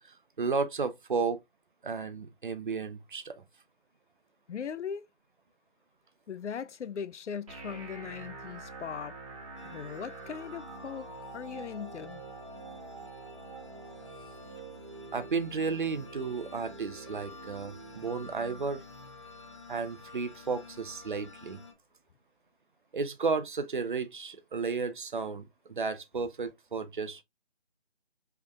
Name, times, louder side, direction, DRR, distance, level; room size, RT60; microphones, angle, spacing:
voice 1, 0.4-1.4 1.8-3.4 15.1-18.8 19.7-21.6 22.9-27.2, right 4 dB, 45° right, 0.7 m, -33 dB
voice 2, 4.5-5.1 6.3-9.2 9.6-11.1 11.3-12.2, left 7 dB, 85° left, 0.5 m, -39 dB
sound 1, 7.5-21.4, right 3 dB, 30° right, 1.3 m, -47 dB
sound 2, 9.6-21.7, left 4 dB, 25° left, 0.9 m, -51 dB
5.6 x 3.5 x 2.3 m
figure-of-eight pair, 165°, 35 cm